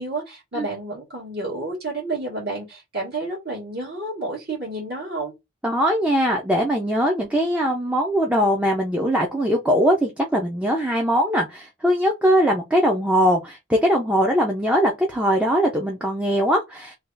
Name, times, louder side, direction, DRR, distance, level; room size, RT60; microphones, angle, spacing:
voice 1, 0.0-5.3, right 2 dB, 55° right, 1.8 m, -30 dB
voice 2, 5.6-16.9, equal, 5° right, 0.6 m, -21 dB
3.3 x 2.4 x 3.9 m
head